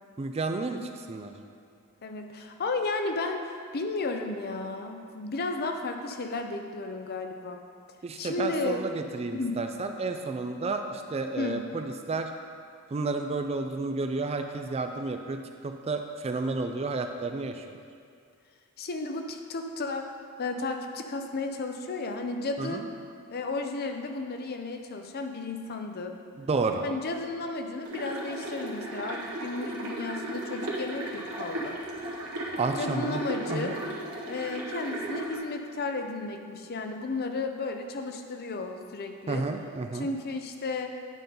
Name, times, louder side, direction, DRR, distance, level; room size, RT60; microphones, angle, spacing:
voice 1, 0.2-1.3 8.0-12.3 12.9-15.4 15.6-17.6 22.6-22.9 26.4-26.8 32.5-33.2 33.5-33.7 39.3-40.1, right 3 dB, 30° right, 6 dB, 0.4 m, -31 dB
voice 2, 2.0-3.4 3.7-7.6 8.2-8.8 9.3-9.6 11.4-11.7 18.8-20.1 20.4-22.8 23.3-26.2 26.8-31.8 32.8-33.8 34.3-39.5 39.9-40.9, left 3 dB, 45° left, 5 dB, 0.6 m, -33 dB
sound 1, 27.8-35.4, right 1 dB, 80° right, 1.4 m, -36 dB
9.1 x 3.9 x 5.3 m, 2.3 s
head